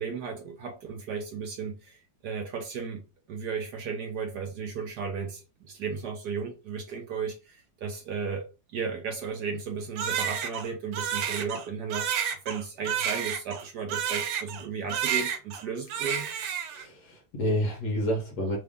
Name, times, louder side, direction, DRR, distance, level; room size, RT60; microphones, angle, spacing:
voice 1, 0.0-2.0 2.2-3.0 3.3-8.4 8.7-12.1 12.4-16.3, right 5 dB, 70° right, 1.0 m, -34 dB
Crying sobbing, 10.0-14.7 14.9-15.6 15.9-16.9, right 8 dB, 85° right, 1.5 m, -30 dB
voice 2, 16.7-18.6, equal, 65° left, 1.1 m, -29 dB
3.5 x 2.4 x 3.4 m
omnidirectional pair, 2.3 m